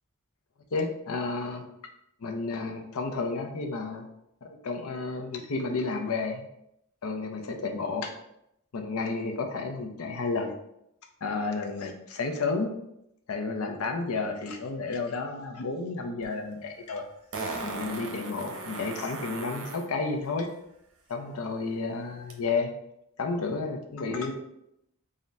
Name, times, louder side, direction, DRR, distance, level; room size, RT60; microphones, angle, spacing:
voice 1, 0.7-1.6 2.2-4.1 4.4-6.5 7.0-8.1 8.7-10.5 11.2-12.7 13.3-17.0 17.4-20.5 21.1-22.7 23.2-24.3, left 3 dB, 90° left, 4 dB, 0.6 m, -31 dB
Fart, 16.2-16.3 17.3-19.9 22.3-22.4, right 3 dB, 80° right, 0.7 m, -37 dB
3.7 x 2.1 x 4.1 m, 0.80 s
head